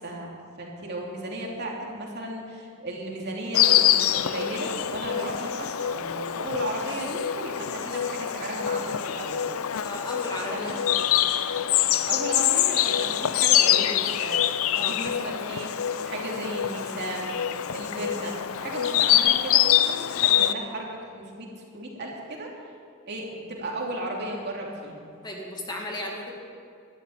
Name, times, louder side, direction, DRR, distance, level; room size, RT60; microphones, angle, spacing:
voice 1, 0.0-9.5 10.5-10.8 12.1-15.7 16.0-17.4 17.7-21.5 21.7-22.5 23.1-25.0, right 1 dB, 55° right, -2 dB, 2.9 m, -35 dB
Insect, 3.5-20.5, left 11 dB, 80° left, 0.5 m, -25 dB
voice 2, 9.8-11.1 14.7-15.0 25.2-26.3, left 1 dB, 20° left, -1 dB, 2.1 m, -35 dB
12.5 x 11.0 x 8.6 m, 2.4 s
head